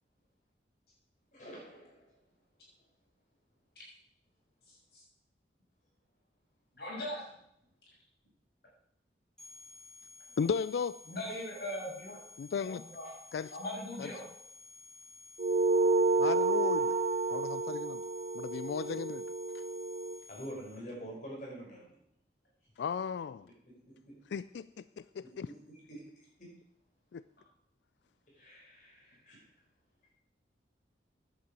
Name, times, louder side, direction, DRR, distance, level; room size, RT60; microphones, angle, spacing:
voice 1, 1.3-2.2 20.3-21.9 25.9-26.0 26.4-26.5 28.3-29.5, equal, 45° left, 5.6 m, -46 dB
voice 2, 4.7-5.0 6.7-7.4 11.0-12.2 12.6-13.1 13.5-14.3, left 1 dB, 65° left, 6.4 m, -40 dB
sound 1, 9.4-20.8, left 4 dB, 5° left, 2.8 m, -54 dB
voice 3, 10.4-11.0 12.4-12.8 13.3-13.5 14.0-14.1 16.2-17.0 17.3-18.0 18.3-19.3 19.5-19.6 22.8-23.5 24.3-24.7 25.0-25.5 27.1-27.2, left 6 dB, 80° left, 0.3 m, -35 dB
sound 2, 15.4-20.2, right 3 dB, 50° right, 0.4 m, -30 dB
10.5 x 8.4 x 6.9 m
head